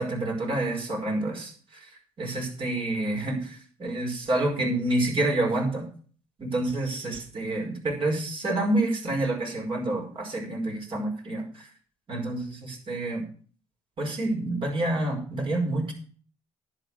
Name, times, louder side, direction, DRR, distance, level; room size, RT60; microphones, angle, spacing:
voice 1, 0.0-1.8 2.2-5.8 6.4-11.7 12.1-13.2 14.0-15.9, right 2 dB, 50° right, 2 dB, 5.0 m, -28 dB
10.5 x 7.4 x 6.1 m, 0.43 s
supercardioid pair, 75°, 11 cm